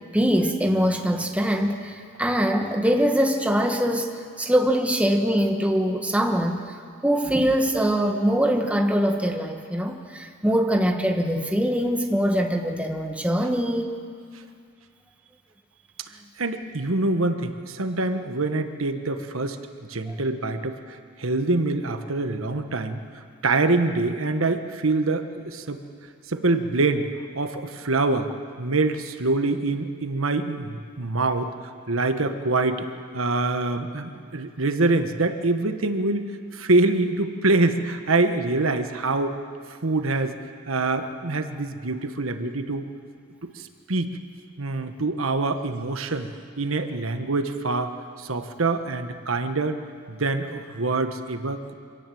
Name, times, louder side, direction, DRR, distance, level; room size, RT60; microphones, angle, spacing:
voice 1, 0.1-6.8 7.0-13.9, equal, 5° right, 3 dB, 1.4 m, -23 dB
voice 2, 16.4-19.6 19.9-25.8 26.3-27.1 27.3-28.3 28.6-31.5 31.9-32.9 33.1-39.3 39.8-40.3 40.7-42.9 43.4-44.2 44.6-46.3 46.6-49.8 50.1-51.7, right 2 dB, 85° right, 8 dB, 1.3 m, -25 dB
25.5 x 17.5 x 7.8 m, 2.2 s
head